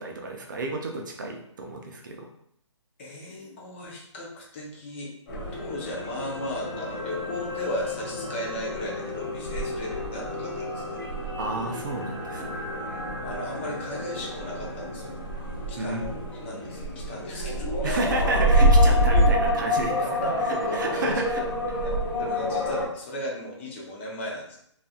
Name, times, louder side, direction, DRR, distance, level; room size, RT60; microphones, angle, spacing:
voice 1, 0.0-2.3 11.4-12.7 15.8-16.1 17.8-20.3 20.7-21.4, right 2 dB, 40° right, 2 dB, 0.4 m, -31 dB
voice 2, 3.0-5.1 5.5-11.0 12.6-12.9 13.2-15.1 15.7-16.1 16.4-18.0 18.9-19.4 20.0-21.2 21.8-24.6, left 1 dB, 25° left, -2 dB, 0.4 m, -36 dB
sound 1, 5.3-22.9, equal, 45° left, 0.8 m, -27 dB
sound 2, 5.5-17.8 18.1-18.3, left 2 dB, 10° right, 1.1 m, -38 dB
2.6 x 2.4 x 2.4 m, 0.69 s
hypercardioid pair, 150°, 16 cm